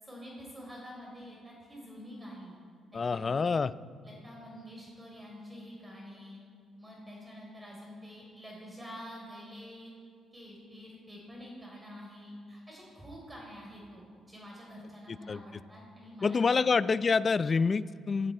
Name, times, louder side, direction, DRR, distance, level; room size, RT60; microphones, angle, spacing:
voice 1, 0.0-2.6 2.9-3.5 4.0-6.4 6.8-9.9 10.3-16.8, equal, 15° right, -2 dB, 4.0 m, -47 dB
voice 2, 2.9-3.7 15.1-15.4 16.2-18.3, left 5 dB, 35° left, 16 dB, 0.4 m, -27 dB
18.0 x 14.0 x 4.4 m, 2.4 s
cardioid pair, 90°, 0 cm